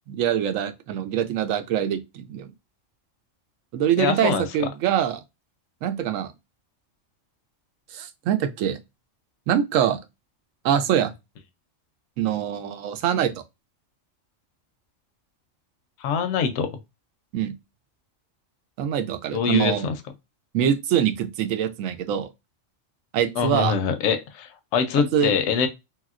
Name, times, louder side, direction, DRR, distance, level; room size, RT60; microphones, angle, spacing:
voice 1, 0.1-2.5 3.7-5.2 5.8-6.3 7.9-8.8 9.5-10.0 10.6-11.1 12.2-13.3 17.3-17.5 18.8-19.9 20.5-22.3 23.1-23.7 25.1-25.3, right 9 dB, 90° right, 1.0 m, -24 dB
voice 2, 4.0-4.7 16.0-16.7 19.3-19.9 23.4-25.7, left 7 dB, 75° left, 0.9 m, -24 dB
3.1 x 2.7 x 2.4 m
omnidirectional pair, 1.3 m